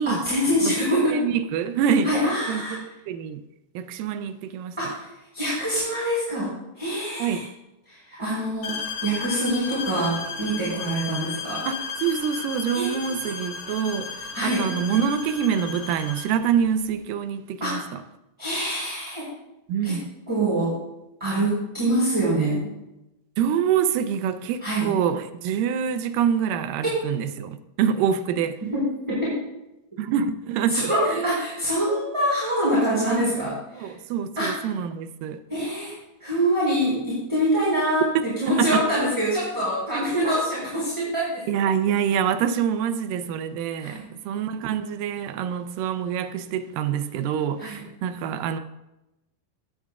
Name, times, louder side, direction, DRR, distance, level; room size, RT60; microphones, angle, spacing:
voice 1, 0.1-1.3 2.0-2.8 4.8-7.5 7.9-11.7 12.7-12.9 14.3-14.7 17.6-17.8 18.4-19.3 19.8-20.0 20.3-20.8 21.2-22.7 24.6-24.9 26.8-27.1 28.7-29.3 30.7-33.9 34.4-34.6 35.5-35.9 36.2-41.5 43.8-44.1 47.6-47.8, right 1 dB, 10° right, 3.9 m, -25 dB
voice 2, 1.1-3.4 3.8-4.8 7.2-7.4 11.7-18.0 19.7-20.1 23.4-28.6 30.0-31.2 33.8-35.4 38.5-38.8 39.9-40.0 41.5-48.6, right 8 dB, 85° right, 2.2 m, -26 dB
sound 1, 8.6-16.4, left 6 dB, 65° left, 2.5 m, -34 dB
15.5 x 9.1 x 2.4 m
omnidirectional pair, 3.9 m